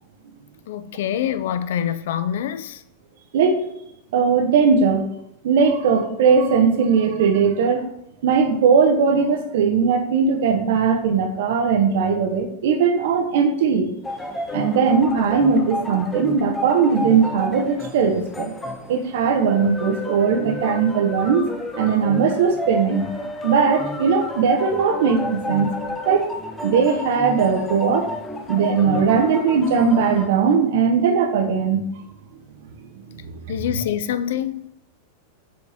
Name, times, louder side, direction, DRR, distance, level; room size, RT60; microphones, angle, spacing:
voice 1, 0.7-2.8 33.5-34.7, left 10 dB, 70° left, 0.4 m, -25 dB
voice 2, 3.3-3.7 4.1-5.1 5.4-7.9 8.2-13.9 14.5-18.5 18.9-21.5 21.7-23.1 23.4-25.7 26.1-26.3 26.6-28.1 28.5-31.8 33.2-33.4, right 5 dB, 65° right, 1.0 m, -19 dB
sound 1, 14.0-30.3, left 1 dB, 10° left, 0.6 m, -31 dB
7.2 x 4.4 x 3.5 m
supercardioid pair, 165°, 0 cm